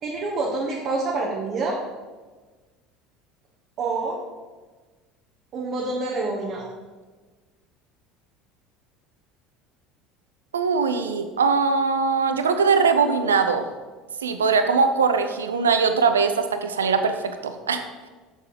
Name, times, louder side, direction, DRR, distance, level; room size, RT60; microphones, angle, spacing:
voice 1, 0.0-1.8 3.8-4.2 5.5-6.7, right 3 dB, 45° right, -3 dB, 1.3 m, -27 dB
voice 2, 10.5-13.7 14.2-17.9, right 5 dB, 80° right, 8 dB, 0.6 m, -21 dB
7.2 x 6.8 x 5.1 m, 1.3 s
figure-of-eight pair, 65°, 0 cm